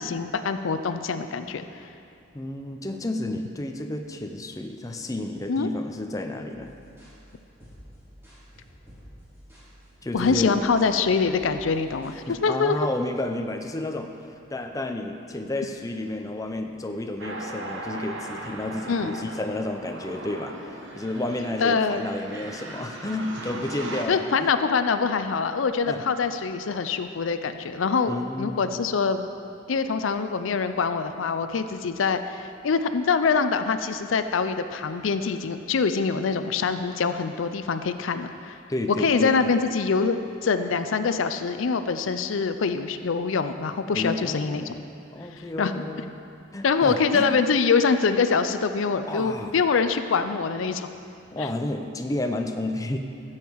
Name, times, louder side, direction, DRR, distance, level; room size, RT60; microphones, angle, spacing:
voice 1, 0.0-1.6 5.5-5.7 10.1-12.8 18.9-19.2 21.6-22.0 24.1-29.3 29.7-38.6 39.0-44.8 45.6-45.8 46.6-50.9 51.4-51.5, left 5 dB, 85° left, 10 dB, 0.5 m, -24 dB
voice 2, 2.3-6.7 10.0-10.6 12.3-14.2 14.5-24.2 25.9-26.0 28.1-28.8 38.7-39.5 43.9-44.8 45.1-46.1 46.5-47.3 49.0-49.5 51.3-53.0, left 1 dB, 15° left, 4 dB, 0.5 m, -31 dB
sound 1, 6.5-12.2, equal, 15° right, 2.9 m, -50 dB
sound 2, 17.2-24.0, right 2 dB, 70° right, 1.2 m, -38 dB
14.5 x 7.3 x 4.6 m, 2.5 s
head